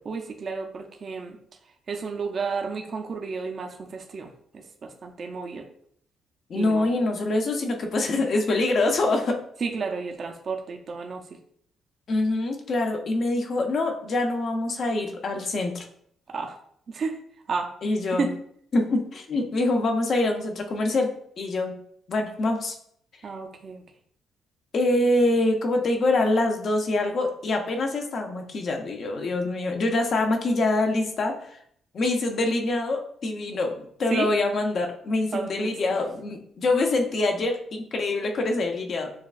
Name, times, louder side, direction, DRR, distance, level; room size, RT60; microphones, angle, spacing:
voice 1, 0.1-1.4 1.9-4.3 4.5-5.7 6.5-6.9 9.6-11.2 16.3-16.6 16.9-17.2 17.5-17.7 18.0-18.3 23.2-23.8 34.1-34.3 35.3-35.7, right 4 dB, 50° right, 3 dB, 0.5 m, -31 dB
voice 2, 6.5-9.4 12.1-15.9 17.8-18.3 18.7-21.1 21.4-21.8 22.1-22.7 24.7-31.6 31.9-39.1, left 2 dB, 55° left, 3 dB, 0.7 m, -25 dB
6.4 x 2.3 x 2.4 m, 0.65 s
cardioid pair, 90°, 0 cm